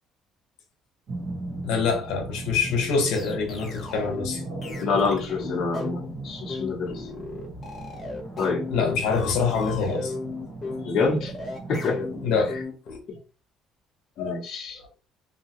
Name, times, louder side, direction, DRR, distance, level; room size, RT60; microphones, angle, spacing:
sound 1, 1.1-12.6, right 2 dB, 45° right, 1.2 m, -38 dB
voice 1, 1.6-4.4 8.7-10.1 12.2-12.5 14.2-14.4, left 5 dB, 75° left, 1.0 m, -25 dB
sound 2, 2.6-13.0, left 3 dB, 20° left, 1.0 m, -35 dB
voice 2, 4.8-7.0 8.4-8.7 10.8-11.3 11.7-12.1 13.1-13.2 14.2-14.8, left 4 dB, 40° left, 0.8 m, -27 dB
2.8 x 2.7 x 2.9 m
cardioid pair, 155°, 0 cm